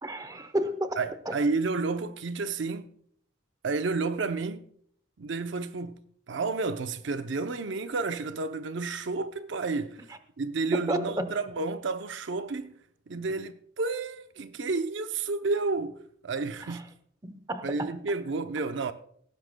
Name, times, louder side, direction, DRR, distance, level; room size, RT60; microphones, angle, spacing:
voice 1, 0.0-1.0 1.3-1.4 10.7-11.3 13.1-13.2 17.2-17.9, right 1 dB, 20° right, 0.8 m, -31 dB
voice 2, 1.0-2.9 3.6-4.7 5.2-6.0 6.3-10.1 10.4-12.7 13.1-16.9 17.6-18.9, right 3 dB, 70° right, 0.6 m, -31 dB
18.0 x 15.5 x 2.2 m
head